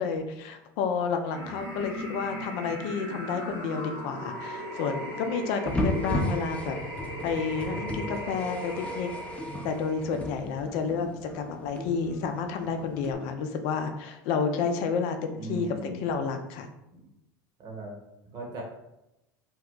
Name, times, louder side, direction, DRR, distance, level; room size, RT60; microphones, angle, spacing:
voice 1, 0.0-6.8 7.2-9.1 9.6-16.7, left 5 dB, 60° left, 6 dB, 0.5 m, -30 dB
sound 1, 1.2-10.3, right 1 dB, 85° right, 1.3 m, -38 dB
sound 2, 5.7-13.2, left 1 dB, 10° left, 0.6 m, -35 dB
voice 2, 15.4-16.0 16.9-17.0 17.6-17.9 18.3-18.6, right 2 dB, 40° right, 0 dB, 1.1 m, -38 dB
2.7 x 2.2 x 3.7 m, 0.91 s
hypercardioid pair, 85°, 11 cm